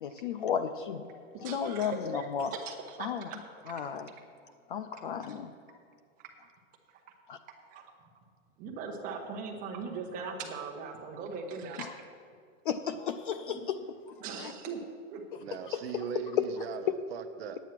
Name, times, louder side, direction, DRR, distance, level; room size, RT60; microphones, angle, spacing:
voice 1, 0.0-2.5 3.0-3.2 3.7-4.1 4.7-5.5 7.3-7.4 12.7-13.8 14.4-14.5 16.4-16.5, left 8 dB, 45° left, 10 dB, 0.4 m, -33 dB
voice 2, 1.3-3.9 5.3-5.4 6.4-6.5 6.9-7.0 7.7-8.1 8.6-11.9 13.5-13.6 14.2-14.8 15.1-15.5 15.9-16.0, right 5 dB, 20° right, 2 dB, 1.1 m, -40 dB
voice 3, 15.4-17.6, right 8 dB, 50° right, 9 dB, 0.6 m, -40 dB
9.2 x 9.1 x 5.9 m, 2.3 s
hypercardioid pair, 160°, 40 cm